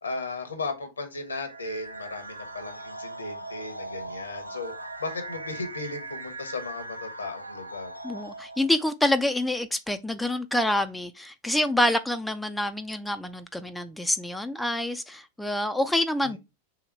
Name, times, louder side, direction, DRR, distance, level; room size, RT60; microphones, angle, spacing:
voice 1, 0.0-4.7 5.0-7.9 16.2-16.4, left 3 dB, 75° left, 0.8 m, -36 dB
sound 1, 1.3-8.9, right 2 dB, 90° right, 0.4 m, -40 dB
voice 2, 8.0-16.4, left 1 dB, 5° left, 0.3 m, -27 dB
3.5 x 2.9 x 4.6 m
figure-of-eight pair, 90°, 0 cm